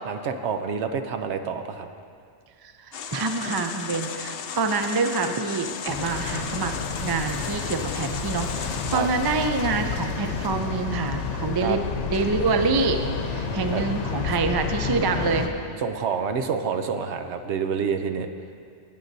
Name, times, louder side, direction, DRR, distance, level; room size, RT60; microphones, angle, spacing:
voice 1, 0.1-1.9 8.9-9.4 11.6-11.8 13.7-13.8 15.8-18.3, right 6 dB, 75° right, 7 dB, 0.9 m, -28 dB
voice 2, 2.8-6.7 7.0-15.5, right 4 dB, 40° right, 6 dB, 0.3 m, -26 dB
sound 1, 2.9-9.0, left 7 dB, 65° left, 0.7 m, -36 dB
sound 2, 5.9-15.5, left 5 dB, 80° left, 1.0 m, -30 dB
17.5 x 8.7 x 2.7 m, 2.3 s
omnidirectional pair, 1.2 m